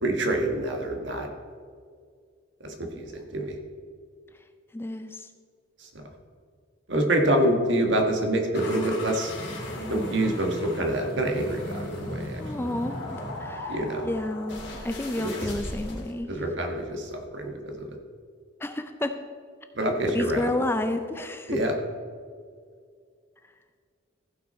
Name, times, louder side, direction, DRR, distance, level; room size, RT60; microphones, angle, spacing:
voice 1, 0.0-1.3 2.6-3.6 5.8-6.0 6.9-9.3 9.9-12.4 13.7-14.1 15.1-15.3 16.3-18.0 19.7-20.5 21.5-21.7, right 1 dB, 70° right, 3 dB, 1.5 m, -26 dB
voice 2, 4.7-5.3 12.4-13.7 14.0-16.3 18.6-19.2 20.1-21.6, left 1 dB, 10° left, 7 dB, 0.4 m, -30 dB
sound 1, 8.5-16.1, left 1 dB, 65° left, 2.8 m, -36 dB
15.0 x 5.9 x 4.3 m, 2.1 s
head